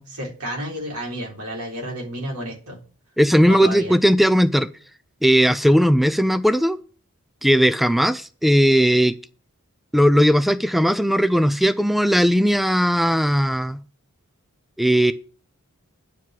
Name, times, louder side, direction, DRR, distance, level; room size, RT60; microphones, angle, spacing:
voice 1, 0.0-2.8 3.5-3.9, equal, 80° right, -1 dB, 3.6 m, -31 dB
voice 2, 3.2-4.7 5.2-6.8 7.4-9.2 9.9-13.8 14.8-15.1, equal, ahead, 12 dB, 0.3 m, -17 dB
9.6 x 4.7 x 7.4 m, 0.39 s
head